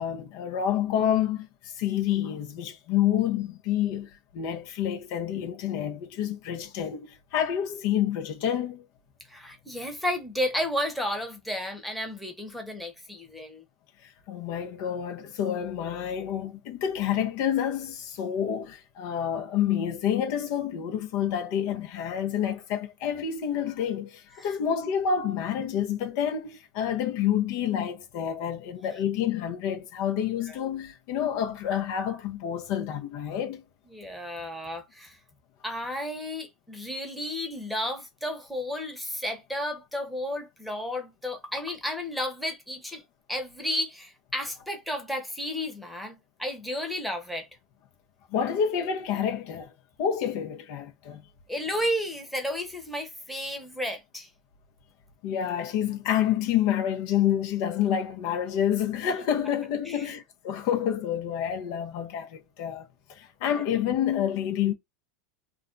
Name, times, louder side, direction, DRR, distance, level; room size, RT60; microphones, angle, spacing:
voice 1, 0.0-8.9 14.0-33.6 48.3-49.7 50.0-51.2 55.2-64.7, left 9 dB, 65° left, 0.7 m, -28 dB
voice 2, 9.3-13.6 24.4-24.5 30.5-30.6 33.9-35.2 35.6-43.0 43.3-47.5 51.5-54.3 59.8-60.1 63.4-63.6, left 1 dB, ahead, 0.9 m, -32 dB
2.4 x 2.1 x 3.8 m
supercardioid pair, 110°, 0 cm